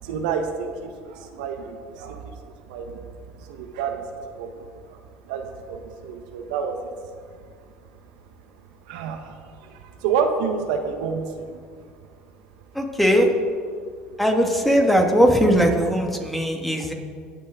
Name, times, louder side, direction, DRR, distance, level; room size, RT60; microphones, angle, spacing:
voice 1, 0.0-2.3 2.7-3.0 3.3-4.1 4.3-4.6 4.9-5.0 5.2-6.9 8.9-11.6, right 6 dB, 85° right, 4 dB, 1.2 m, -29 dB
voice 2, 12.7-13.3 14.2-16.9, equal, 5° left, 2 dB, 1.8 m, -19 dB
20.0 x 7.4 x 3.7 m, 2.1 s
supercardioid pair, 100°, 4 cm